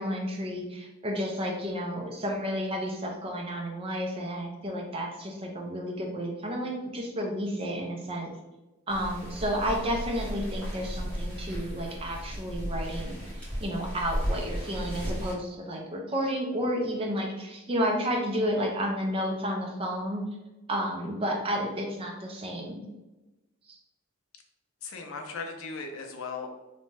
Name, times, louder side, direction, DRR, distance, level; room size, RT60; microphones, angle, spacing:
voice 1, 0.0-8.3 8.9-20.2 20.7-22.8 23.7-23.8, equal, 25° right, 1 dB, 0.4 m, -31 dB
sound 1, 8.9-15.3, equal, 5° left, 1.4 m, -35 dB
voice 2, 24.8-26.5, left 4 dB, 65° left, 3 dB, 0.5 m, -37 dB
2.6 x 2.2 x 3.1 m, 1.0 s
head